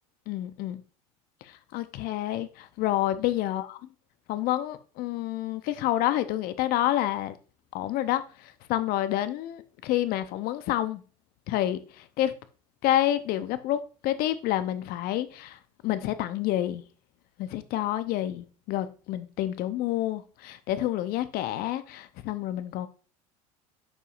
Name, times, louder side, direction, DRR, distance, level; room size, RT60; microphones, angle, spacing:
voice 1, 0.3-0.8 1.4-3.9 4.3-7.4 7.7-11.0 11.5-12.3 12.8-16.9 17.4-22.9, left 13 dB, 55° left, 0.8 m, -29 dB
9.5 x 5.5 x 2.6 m
hypercardioid pair, 75°, 18 cm